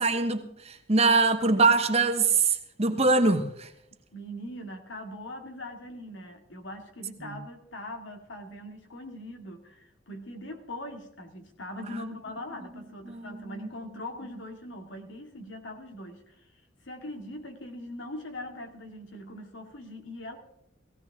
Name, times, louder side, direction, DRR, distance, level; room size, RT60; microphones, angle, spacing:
voice 1, 0.0-3.7 7.2-7.3 11.9-12.0 13.1-13.7, right 3 dB, 35° right, 1.1 m, -24 dB
voice 2, 4.1-16.4 16.8-20.4, left 1 dB, 70° left, 2.3 m, -41 dB
17.0 x 16.5 x 3.6 m
head